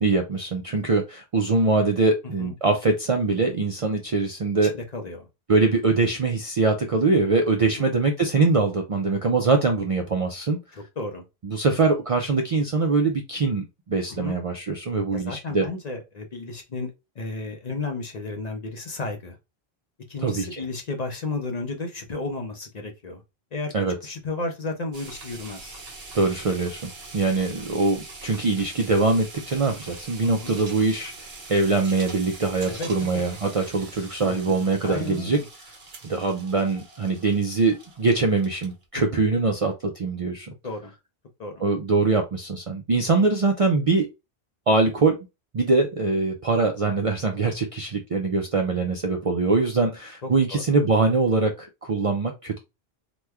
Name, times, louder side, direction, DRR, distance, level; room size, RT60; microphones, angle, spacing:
voice 1, 0.0-4.7 5.5-10.6 11.4-15.7 20.2-20.6 23.7-23.9 26.1-31.1 31.5-35.4 36.0-40.5 41.6-44.1 44.7-45.2 45.5-52.6, right 3 dB, 50° right, 0.4 m, -23 dB
voice 2, 2.2-2.5 4.6-5.3 7.8-7.9 10.7-11.3 11.7-11.8 14.1-14.4 15.1-16.9 17.2-19.4 20.1-23.2 23.5-23.7 24.0-25.8 30.2-30.5 32.7-33.2 34.2-34.3 34.8-35.5 38.9-39.2 40.6-40.9 41.4-41.6 50.2-50.6, left 3 dB, 50° left, 0.6 m, -33 dB
sound 1, 24.9-38.8, right 3 dB, 70° right, 1.2 m, -43 dB
3.0 x 2.2 x 3.4 m
omnidirectional pair, 1.1 m